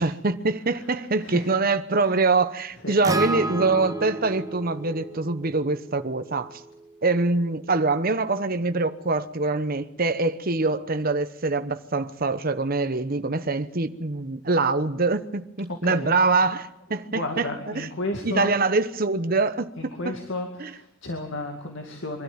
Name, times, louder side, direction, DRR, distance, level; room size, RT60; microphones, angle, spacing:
voice 1, 0.0-6.5 7.0-17.5 17.7-17.9 18.2-20.2 20.6-20.7, right 3 dB, 45° right, 1.0 m, -24 dB
voice 2, 1.2-1.6 1.9-2.2 2.8-3.0 15.8-16.2 17.1-18.6 19.8-22.2, left 2 dB, 65° left, 2.3 m, -33 dB
Acoustic guitar, 3.0-7.3, right 2 dB, 15° right, 1.1 m, -32 dB
24.0 x 12.5 x 8.9 m
head